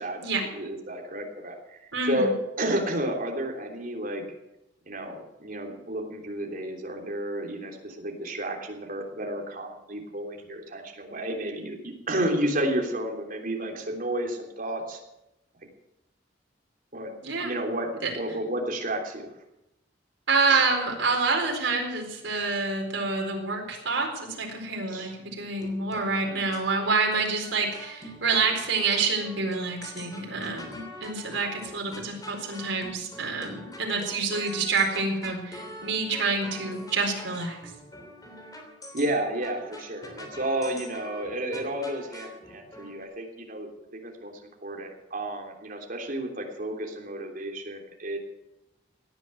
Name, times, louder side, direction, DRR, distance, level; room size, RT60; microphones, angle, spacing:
voice 1, 0.0-2.3 2.6-4.2 4.9-15.0 16.9-17.1 17.4-17.9 18.2-19.3 20.5-20.7 24.9-25.1 38.9-48.2, right 1 dB, 45° right, 1 dB, 3.2 m, -31 dB
voice 2, 1.9-2.3 17.2-17.5 18.0-18.1 20.3-37.6, right 4 dB, 80° right, 2 dB, 4.3 m, -27 dB
sound 1, 25.6-43.1, left 1 dB, 20° left, 3.2 m, -45 dB
17.5 x 10.5 x 7.8 m, 0.91 s
head